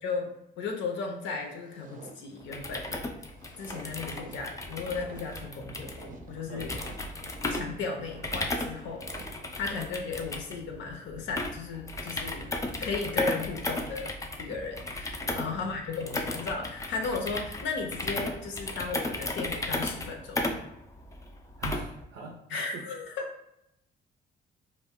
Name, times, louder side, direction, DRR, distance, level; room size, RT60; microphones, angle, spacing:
voice 1, 0.0-2.9 3.6-6.8 7.5-9.1 9.6-20.4 22.5-23.2, left 4 dB, 70° left, 2 dB, 0.5 m, -35 dB
sound 1, 1.4-10.0, right 2 dB, 40° right, 0.5 m, -50 dB
sound 2, 2.4-22.0, left 2 dB, 15° left, 0.3 m, -35 dB
voice 2, 6.5-6.8 15.2-15.8 21.6-22.3 22.7-22.8, right 3 dB, 90° right, -1 dB, 0.6 m, -42 dB
2.4 x 2.1 x 3.5 m, 0.81 s
cardioid pair, 90°, 20 cm